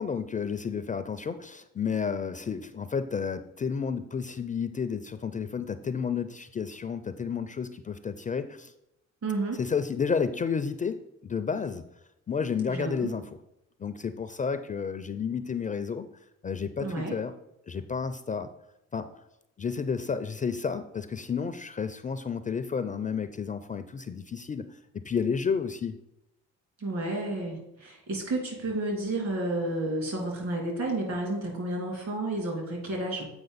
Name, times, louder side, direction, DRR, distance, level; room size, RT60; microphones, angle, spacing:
voice 1, 0.0-8.7 9.6-11.8 12.3-13.2 13.8-16.1 16.4-17.3 17.7-18.5 18.9-19.1 19.6-24.8 25.0-26.0, left 6 dB, 25° left, 10 dB, 0.4 m, -31 dB
voice 2, 9.2-9.6 12.7-13.1 16.8-17.1 26.8-33.3, right 2 dB, 60° right, 0 dB, 2.9 m, -31 dB
7.8 x 4.8 x 4.0 m, 0.85 s
cardioid pair, 90°, 30 cm